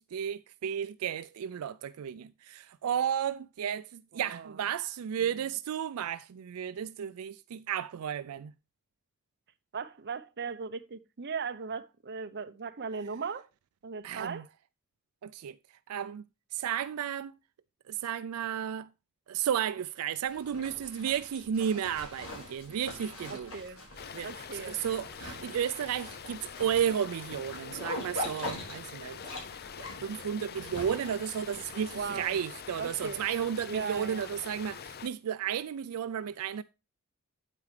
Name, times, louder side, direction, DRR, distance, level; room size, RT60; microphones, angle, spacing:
voice 1, 0.0-8.5 14.0-14.4 15.2-15.6 15.9-16.2 16.5-17.4 17.9-18.9 19.3-23.5 24.1-29.2 30.0-36.6, right 9 dB, 80° right, 0.4 m, -33 dB
voice 2, 4.1-4.6 5.2-5.4 9.7-13.5 13.8-14.5 23.3-23.8 24.2-24.8 31.9-32.4 32.8-33.2 33.7-34.3, right 5 dB, 50° right, 0.7 m, -38 dB
Zipper (clothing), 20.3-32.8, left 1 dB, 70° left, 4.9 m, -43 dB
sound 1, 24.0-35.1, left 7 dB, 45° left, 0.5 m, -45 dB
9.3 x 8.4 x 3.2 m
head